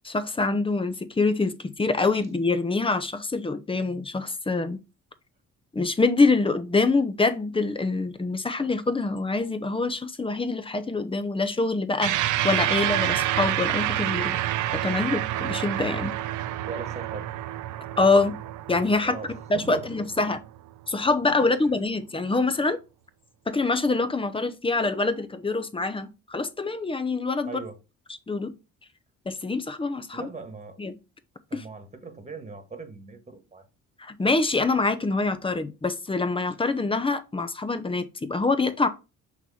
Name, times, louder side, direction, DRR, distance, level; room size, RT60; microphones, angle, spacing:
voice 1, 0.0-4.8 5.7-14.4 14.8-16.1 18.0-18.4 18.7-19.2 19.5-20.4 20.9-22.8 23.5-27.5 28.3-28.5 29.3-30.3 30.8-30.9 31.5-31.6 34.0-38.9, left 3 dB, 20° left, 0.7 m, -25 dB
sound 1, 12.0-20.7, right 13 dB, 80° right, 0.6 m, -28 dB
voice 2, 16.6-17.3 19.0-19.9 20.1-20.2 27.4-27.8 30.1-30.8 31.5-33.6, right 4 dB, 20° right, 1.5 m, -39 dB
6.0 x 3.1 x 5.5 m
cardioid pair, 90°, 30 cm